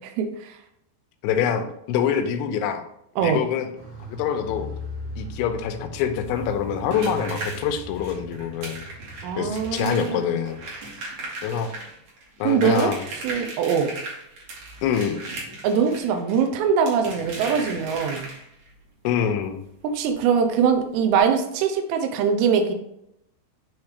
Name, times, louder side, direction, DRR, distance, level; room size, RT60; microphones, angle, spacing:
voice 1, 1.2-2.8 3.2-3.7 4.0-4.7 5.2-8.8 9.4-10.6 11.4-11.7 12.4-13.0 14.8-15.2 19.0-19.6, left 8 dB, 85° left, 6 dB, 3.0 m, -25 dB
Car, 3.7-9.9 10.2-10.3, equal, 40° left, 0.7 m, -38 dB
sound 1, 6.2-18.7 20.2-20.3 20.6-20.7 21.1-21.2, right 2 dB, 55° right, 2.2 m, -37 dB
voice 2, 9.2-10.3 12.4-12.9 13.2-13.9 15.6-18.3 19.9-22.7, right 6 dB, 80° right, 5 dB, 2.7 m, -22 dB
9.7 x 3.5 x 3.2 m, 0.77 s
omnidirectional pair, 5.4 m